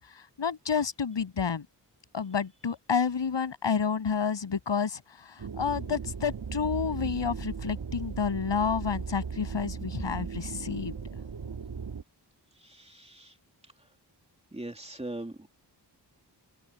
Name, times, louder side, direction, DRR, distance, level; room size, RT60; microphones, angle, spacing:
voice 1, 0.4-1.7 2.1-10.9, left 6 dB, 85° left, 7.7 m, -30 dB
sound 1, 5.4-12.0, right 6 dB, 65° right, 1.9 m, -37 dB
voice 2, 12.6-13.3 14.5-15.5, right 1 dB, 15° right, 3.1 m, -40 dB
open air
wide cardioid pair, 115°, 42 cm